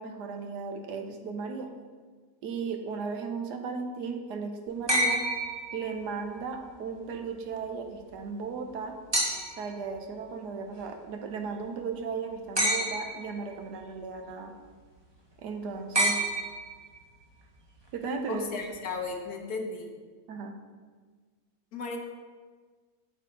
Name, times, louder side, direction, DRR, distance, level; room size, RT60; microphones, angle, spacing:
voice 1, 0.0-1.7 2.4-5.2 5.7-9.0 9.6-14.5 15.4-16.2 17.9-18.4 20.3-20.5, right 5 dB, 70° right, 5 dB, 1.4 m, -36 dB
sound 1, 4.9-6.3 9.1-9.7 12.6-13.4 15.9-17.0 18.6-18.7, right 1 dB, 20° right, 0.7 m, -28 dB
voice 2, 18.3-19.9 21.7-22.0, left 4 dB, 60° left, 2 dB, 1.4 m, -35 dB
9.0 x 6.8 x 3.9 m, 1.5 s
omnidirectional pair, 1.9 m